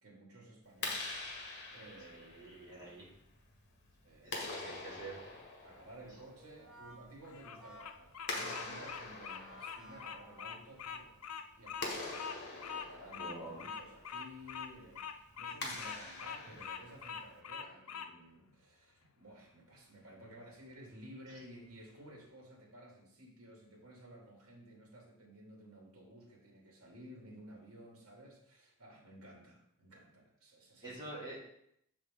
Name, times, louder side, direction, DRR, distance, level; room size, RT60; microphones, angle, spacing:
voice 1, 0.0-3.1 4.0-4.5 5.6-31.1, right 1 dB, 70° right, -2 dB, 2.7 m, -55 dB
Clapping, 0.6-17.4, left 3 dB, 50° left, 1.6 m, -46 dB
voice 2, 2.1-3.1 4.2-5.2 13.2-13.6 30.8-31.4, right 2 dB, 20° right, -7 dB, 3.0 m, -47 dB
Brass instrument, 6.4-10.9, equal, 5° right, 1.1 m, -56 dB
Bird vocalization bird call bird song, 7.2-18.1, left 7 dB, 85° left, 0.6 m, -44 dB
7.0 x 6.4 x 3.8 m, 0.74 s
head